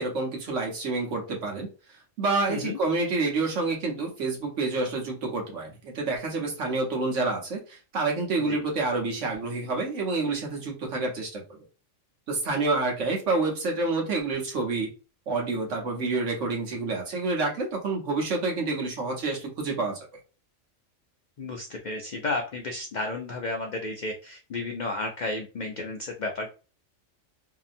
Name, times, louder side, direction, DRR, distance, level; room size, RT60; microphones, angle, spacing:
voice 1, 0.0-1.7 2.2-11.4 12.3-14.9 15.3-20.1, right 3 dB, 70° right, 1 dB, 1.2 m, -28 dB
voice 2, 21.4-26.5, left 2 dB, 65° left, 2 dB, 0.4 m, -32 dB
2.8 x 2.6 x 2.5 m, 0.34 s
omnidirectional pair, 1.3 m